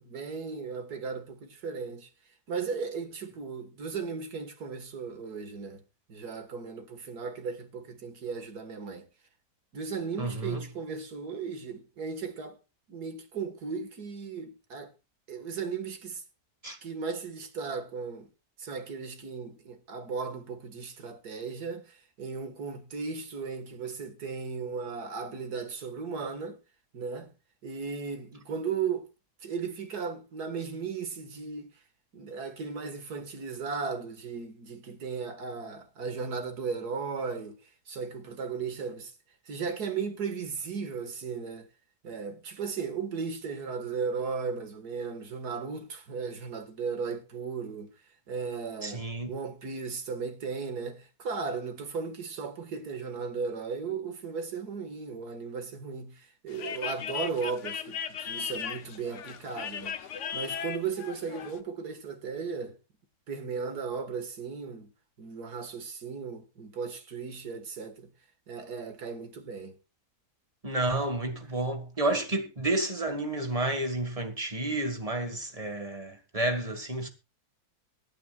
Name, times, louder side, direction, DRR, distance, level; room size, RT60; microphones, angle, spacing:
voice 1, 0.0-2.1 2.5-5.8 6.1-9.1 9.7-12.6 12.9-14.9 15.3-16.2 16.8-18.3 18.6-26.6 26.9-27.3 27.6-29.1 29.4-31.7 32.1-37.6 37.9-39.1 39.5-41.7 42.0-47.9 48.3-60.0 60.3-62.8 63.3-64.9 65.2-68.1 68.5-69.8, right 5 dB, 85° right, 2.3 m, -36 dB
voice 2, 10.2-10.7 16.6-16.8 48.8-49.3 70.6-77.1, right 2 dB, 25° right, 2.0 m, -30 dB
sound 1, 56.5-61.6, left 8 dB, 55° left, 1.1 m, -37 dB
25.0 x 9.3 x 2.4 m
omnidirectional pair, 1.6 m